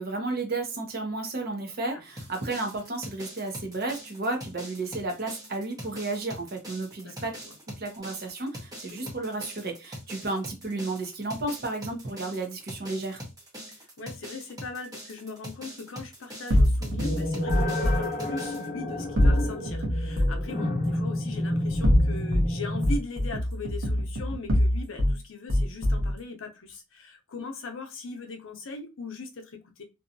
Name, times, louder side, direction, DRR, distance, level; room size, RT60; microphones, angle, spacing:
voice 1, 0.0-7.4 7.7-13.2, right 2 dB, 50° right, 0.7 m, -32 dB
sound 1, 2.2-18.7, equal, 20° right, 0.8 m, -43 dB
voice 2, 7.0-7.5 8.9-9.1 13.7-29.8, left 3 dB, 75° left, 0.6 m, -40 dB
sound 2, 16.5-18.0 19.2-20.5 21.7-22.5 22.8-25.2 25.5-26.1, left 1 dB, 90° right, 0.8 m, -24 dB
sound 3, 17.0-22.9, left 1 dB, 40° left, 0.8 m, -30 dB
2.7 x 2.2 x 2.6 m
head